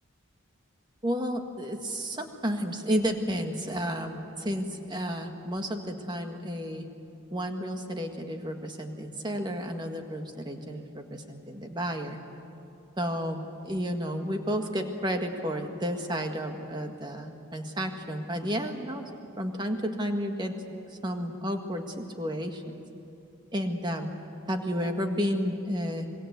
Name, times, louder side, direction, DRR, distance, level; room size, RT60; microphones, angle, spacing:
voice 1, 1.0-6.9 7.3-12.2 13.0-19.1 19.4-22.6 23.5-24.1 24.5-26.1, equal, 20° right, 4 dB, 1.7 m, -32 dB
26.0 x 22.5 x 8.2 m, 2.7 s
head